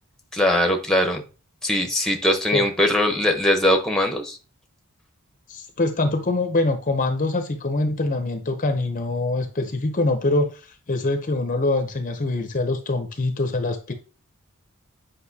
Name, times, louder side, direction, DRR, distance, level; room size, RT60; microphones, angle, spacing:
voice 1, 0.3-1.2 1.6-4.4, left 1 dB, ahead, 0.9 m, -21 dB
voice 2, 5.5-10.6 10.9-13.9, left 2 dB, 35° left, 0.7 m, -24 dB
8.4 x 5.2 x 2.8 m
head